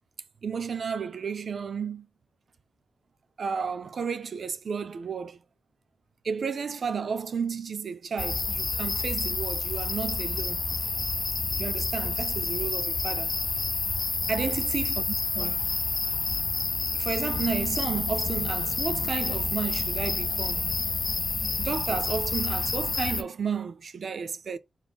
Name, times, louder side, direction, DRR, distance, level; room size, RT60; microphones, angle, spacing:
voice 1, 0.4-2.1 3.4-5.4 6.2-10.7 11.6-13.4 14.3-15.7 16.9-20.7 21.6-24.6, right 6 dB, 55° right, 0.3 m, -32 dB
sound 1, 8.2-23.2, left 3 dB, 35° left, 0.4 m, -29 dB
4.1 x 2.4 x 3.4 m
wide cardioid pair, 170°, 0 cm